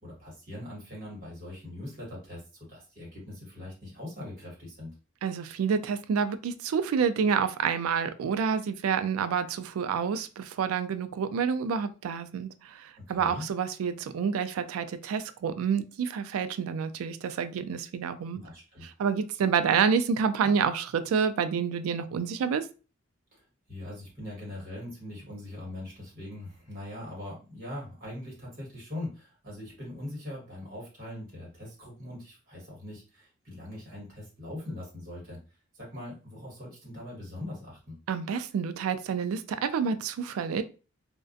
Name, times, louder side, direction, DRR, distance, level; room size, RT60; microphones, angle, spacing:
voice 1, 0.0-2.4 2.7-4.9 13.1-13.4 18.3-18.8 23.3-35.4 35.7-38.0, left 1 dB, 45° right, -4 dB, 1.3 m, -41 dB
voice 2, 5.2-18.4 18.8-22.7 38.1-40.6, right 6 dB, 90° right, 12 dB, 0.3 m, -28 dB
2.3 x 2.2 x 2.5 m, 0.34 s
head